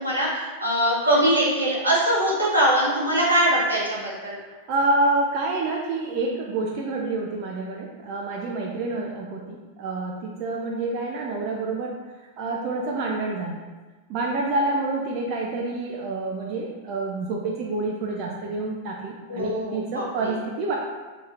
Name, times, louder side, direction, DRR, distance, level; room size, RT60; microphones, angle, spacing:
voice 1, 0.0-4.4 19.3-20.3, right 1 dB, 85° right, -5 dB, 0.8 m, -22 dB
voice 2, 4.5-12.0 12.4-13.6 14.1-20.8, right 2 dB, 40° right, -1 dB, 0.4 m, -27 dB
2.8 x 2.4 x 4.0 m, 1.3 s
figure-of-eight pair, 90°, 0 cm